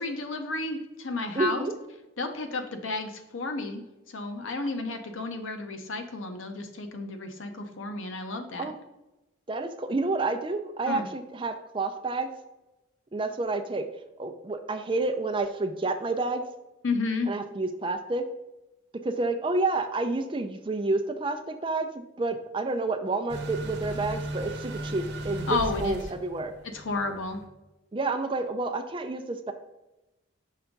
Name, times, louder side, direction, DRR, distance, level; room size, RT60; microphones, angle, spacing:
voice 1, 0.0-1.7 2.2-8.7 10.9-11.1 16.8-17.3 25.5-26.0 26.7-27.4, left 3 dB, 80° left, 6 dB, 0.8 m, -32 dB
voice 2, 1.3-1.7 8.6-8.8 9.5-12.3 13.1-13.8 14.2-16.4 17.3-18.2 19.0-21.9 22.2-26.5 27.9-29.5, right 3 dB, 25° right, 7 dB, 0.4 m, -29 dB
sound 1, 23.3-27.4, right 1 dB, 55° right, 1.0 m, -36 dB
5.6 x 3.5 x 5.1 m, 0.99 s
head